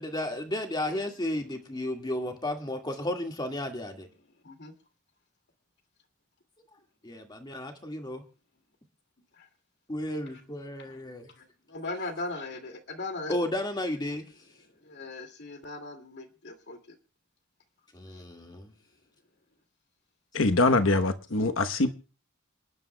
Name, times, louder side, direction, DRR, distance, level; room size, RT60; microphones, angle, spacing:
voice 1, 0.0-4.1 7.0-8.2 9.9-11.3 13.3-14.3 17.9-18.7, left 1 dB, 20° left, 1.9 m, -33 dB
voice 2, 11.7-13.3 14.9-16.8, left 2 dB, 60° left, 2.3 m, -38 dB
voice 3, 20.3-21.9, left 2 dB, 85° left, 1.1 m, -23 dB
27.5 x 11.0 x 2.3 m
head